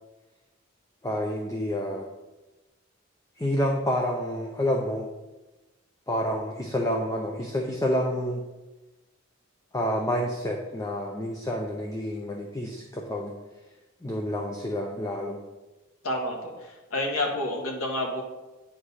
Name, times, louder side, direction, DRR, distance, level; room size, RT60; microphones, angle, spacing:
voice 1, 1.0-2.1 3.4-5.1 6.1-8.4 9.7-13.3 14.0-15.4, equal, 15° left, 1 dB, 0.6 m, -28 dB
voice 2, 16.0-18.2, left 1 dB, 85° left, 0 dB, 1.7 m, -29 dB
9.8 x 4.8 x 4.2 m, 1.1 s
head